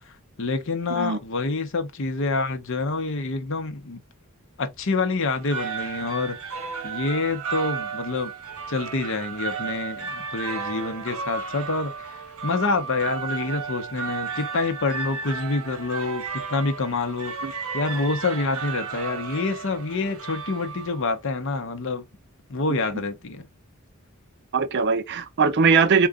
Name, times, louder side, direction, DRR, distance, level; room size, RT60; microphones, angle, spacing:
voice 1, 0.4-4.0 4.6-6.4 6.8-8.3 8.7-22.0 22.5-23.5, left 3 dB, 60° left, 0.7 m, -27 dB
sound 1, 5.3-21.2, right 5 dB, 85° right, 0.9 m, -34 dB
voice 2, 24.5-26.1, right 5 dB, 50° right, 0.5 m, -20 dB
3.7 x 2.3 x 3.5 m
head